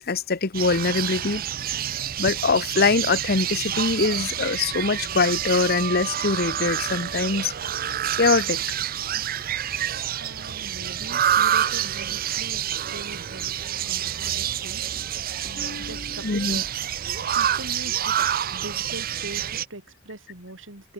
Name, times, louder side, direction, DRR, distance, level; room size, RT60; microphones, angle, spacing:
voice 1, 0.0-1.4 2.2-7.5 7.9-8.6 15.4-16.6, left 4 dB, 50° left, 1.0 m, -23 dB
sound 1, 0.5-19.6, right 10 dB, 50° right, 0.6 m, -28 dB
voice 2, 10.2-13.5 13.8-14.8 15.8-16.7 17.4-20.9, right 1 dB, 70° right, 5.1 m, -41 dB
open air
head